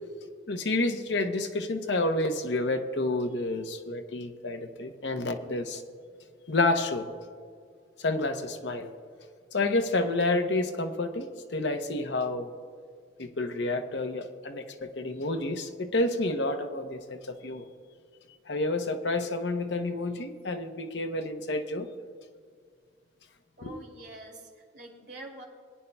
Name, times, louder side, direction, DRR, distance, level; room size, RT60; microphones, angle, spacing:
voice 1, 0.5-5.8 6.5-7.1 8.0-8.9 9.5-11.3 11.5-12.5 13.2-17.7 18.5-21.9 23.6-23.7, left 2 dB, 70° left, 5 dB, 0.8 m, -29 dB
voice 2, 23.6-25.4, right 1 dB, 65° right, -1 dB, 2.5 m, -46 dB
21.5 x 9.7 x 2.3 m, 2.1 s
head